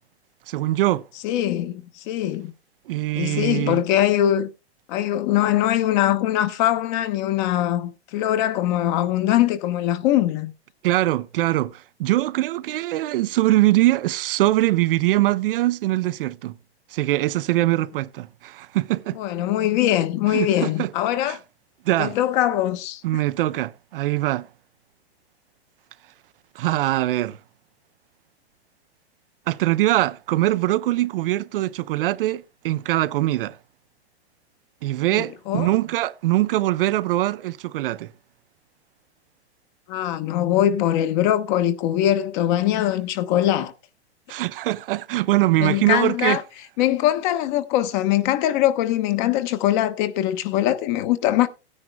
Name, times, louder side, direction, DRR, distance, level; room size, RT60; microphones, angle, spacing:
voice 1, 0.5-1.0 2.9-3.8 10.8-16.6 16.9-19.2 20.3-20.9 21.2-21.4 21.9-22.2 23.0-24.5 26.6-27.4 29.5-33.6 34.8-38.1 44.3-46.4, right 16 dB, 55° right, 0.5 m, -22 dB
voice 2, 1.2-2.5 3.1-4.5 4.9-10.5 19.1-21.4 22.0-23.0 35.1-35.7 39.9-43.7 45.6-46.4 46.8-51.5, left 12 dB, 45° left, 1.1 m, -22 dB
17.0 x 9.7 x 2.2 m
hypercardioid pair, 130°, 34 cm